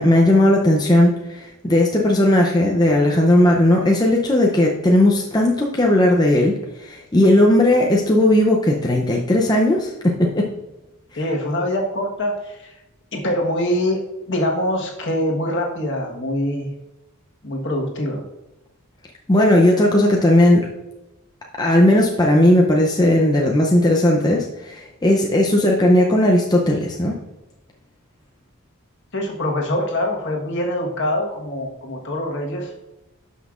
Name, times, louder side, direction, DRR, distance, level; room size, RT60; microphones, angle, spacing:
voice 1, 0.0-10.5 19.3-20.7 21.6-27.2, left 1 dB, 20° left, -1 dB, 0.6 m, -16 dB
voice 2, 11.2-12.7 13.1-16.7 17.4-18.2 29.1-32.7, left 1 dB, 55° left, 0 dB, 1.4 m, -24 dB
12.0 x 5.5 x 2.5 m, 0.97 s
head